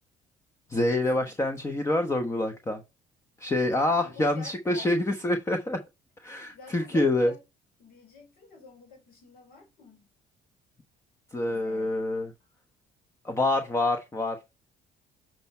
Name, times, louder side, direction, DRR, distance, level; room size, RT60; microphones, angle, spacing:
voice 1, 0.7-2.8 3.4-5.8 6.2-7.3 11.3-12.3 13.2-14.4, left 1 dB, 15° left, 1.0 m, -26 dB
voice 2, 3.8-5.3 6.4-7.4 7.8-10.1 11.5-12.0, left 4 dB, 60° left, 4.1 m, -49 dB
7.9 x 4.5 x 4.3 m
cardioid pair, 110°, 17 cm